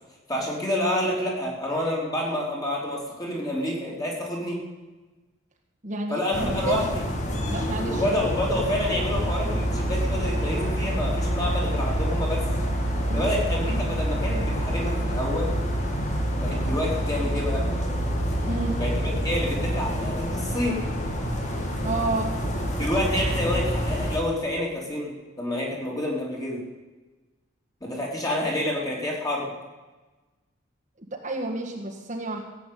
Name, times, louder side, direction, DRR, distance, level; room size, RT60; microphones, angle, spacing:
voice 1, 0.3-4.6 6.1-7.0 7.9-12.4 13.1-15.5 16.3-17.7 18.7-20.8 22.8-25.1 25.4-26.6 27.8-29.5, left 1 dB, 20° left, -2 dB, 3.3 m, -28 dB
voice 2, 5.8-6.8 7.5-8.0 13.1-13.3 18.5-18.7 21.8-22.4 31.2-32.4, right 2 dB, 35° right, 0 dB, 1.7 m, -30 dB
sound 1, 6.3-24.2, equal, 35° left, 2.1 m, -27 dB
16.0 x 8.4 x 8.5 m, 1.2 s
head